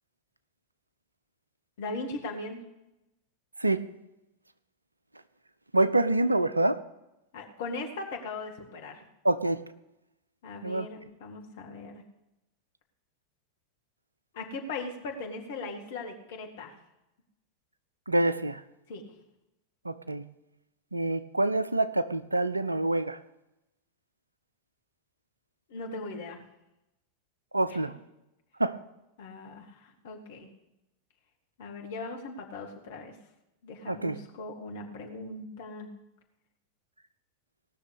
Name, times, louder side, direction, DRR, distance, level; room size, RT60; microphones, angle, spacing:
voice 1, 1.8-2.6 7.3-9.0 10.4-12.0 14.3-16.7 18.9-19.0 25.7-26.4 27.7-27.8 29.2-30.5 31.6-33.1 33.6-35.9, left 3 dB, 55° left, 2 dB, 2.2 m, -39 dB
voice 2, 5.7-6.8 9.2-9.6 10.6-10.9 18.1-18.6 19.8-20.2 20.9-23.2 27.5-28.0 28.6-28.8 33.9-34.2, right 2 dB, 80° right, 15 dB, 0.6 m, -26 dB
18.0 x 6.4 x 8.1 m, 0.93 s
figure-of-eight pair, 90°, 0 cm